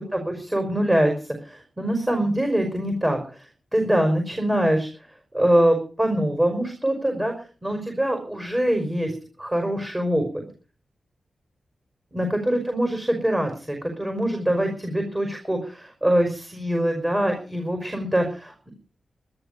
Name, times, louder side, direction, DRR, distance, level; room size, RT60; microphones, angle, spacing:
voice 1, 0.1-1.1 1.4-3.2 3.7-4.9 5.3-7.4 7.6-10.5 12.1-18.7, right 1 dB, 15° right, 4 dB, 5.5 m, -23 dB
13.5 x 13.0 x 6.8 m, 0.37 s
wide cardioid pair, 80°, 0 cm